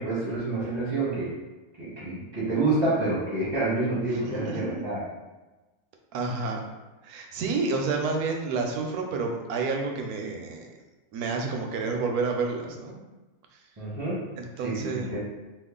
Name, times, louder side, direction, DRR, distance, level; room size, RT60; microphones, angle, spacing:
voice 1, 0.0-1.3 1.8-5.0 13.8-14.2 14.6-15.2, right 2 dB, 25° right, -9 dB, 0.8 m, -28 dB
voice 2, 4.2-4.8 6.1-6.6 7.0-10.7 11.1-12.9 14.4-15.1, right 4 dB, 75° right, 2 dB, 1.0 m, -29 dB
3.0 x 2.3 x 3.6 m, 1.2 s
omnidirectional pair, 1.6 m